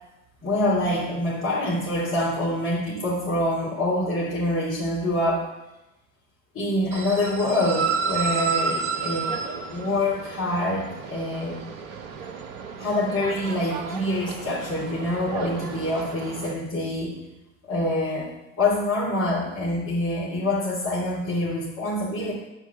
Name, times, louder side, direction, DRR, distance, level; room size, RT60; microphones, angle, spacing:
voice 1, 0.4-5.5 6.5-9.4 9.7-11.6 12.8-17.2 17.7-22.3, left 1 dB, 40° left, -8 dB, 3.3 m, -26 dB
sound 1, 6.9-16.5, right 5 dB, 70° right, 1.1 m, -31 dB
9.4 x 4.7 x 7.4 m, 0.96 s
figure-of-eight pair, 60°, 41 cm